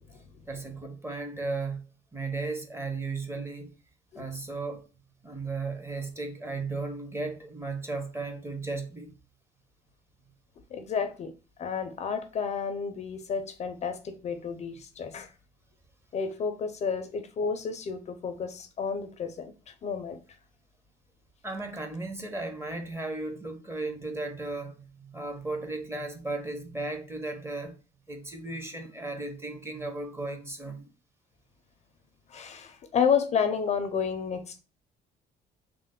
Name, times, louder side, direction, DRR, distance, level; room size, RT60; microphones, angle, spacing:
voice 1, 0.5-1.8 2.1-3.7 4.1-4.9 5.2-9.1 21.4-27.7 28.1-30.9, right 3 dB, 15° right, 0.6 m, -35 dB
voice 2, 10.7-11.3 11.6-15.3 16.1-19.5 19.8-20.2 32.3-34.6, left 6 dB, 40° left, 0.4 m, -30 dB
3.1 x 2.0 x 3.5 m
cardioid pair, 110°, 17 cm